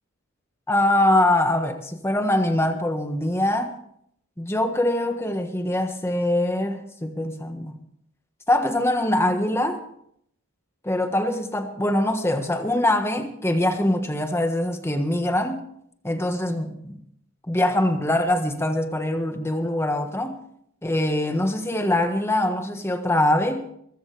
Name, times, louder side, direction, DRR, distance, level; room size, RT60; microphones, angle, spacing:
voice 1, 0.7-3.8 4.4-7.8 8.5-9.8 10.8-15.6 16.0-17.0 17.5-20.4 20.8-23.6, left 1 dB, 10° left, 6 dB, 1.4 m, -23 dB
22.5 x 15.0 x 3.4 m, 0.70 s
head